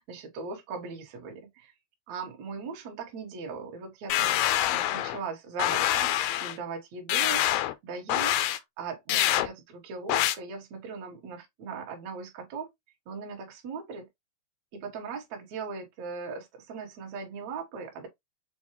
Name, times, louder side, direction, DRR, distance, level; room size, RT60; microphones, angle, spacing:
voice 1, 0.0-1.7 2.1-4.4 4.7-12.7 13.1-14.1 14.7-18.1, right 5 dB, 60° right, 2.2 m, -39 dB
sound 1, 4.1-5.2 5.6-6.6 7.1-7.7 8.1-8.6 9.1-9.5 10.1-10.3, left 13 dB, 80° left, 2.3 m, -25 dB
6.7 x 2.2 x 2.9 m
omnidirectional pair, 4.3 m